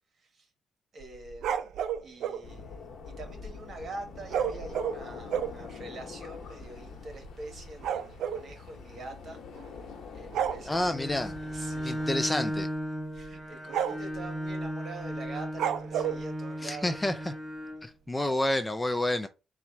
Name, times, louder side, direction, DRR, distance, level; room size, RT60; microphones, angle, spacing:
voice 1, 0.9-1.6 2.0-9.4 10.1-12.0 13.1-17.0 18.2-18.5, right 2 dB, 50° right, 1.4 m, -45 dB
sound 1, 1.0-2.4 4.3-5.6 6.3-6.4 6.6-6.8 7.1-8.5 9.6-9.9 10.3-10.6 12.0-12.2 12.6-12.7 13.2-13.3 13.7-14.2 15.6-16.2, right 9 dB, 75° right, 0.4 m, -31 dB
sound 2, 2.4-12.2, left 5 dB, 65° left, 1.0 m, -45 dB
voice 2, 10.7-11.3 11.8-12.7 16.6-17.1 17.8-19.3, left 1 dB, 15° left, 0.4 m, -29 dB
Bowed string instrument, 10.8-17.9, equal, 15° right, 0.9 m, -36 dB
4.0 x 2.4 x 4.4 m
cardioid pair, 90°, 0 cm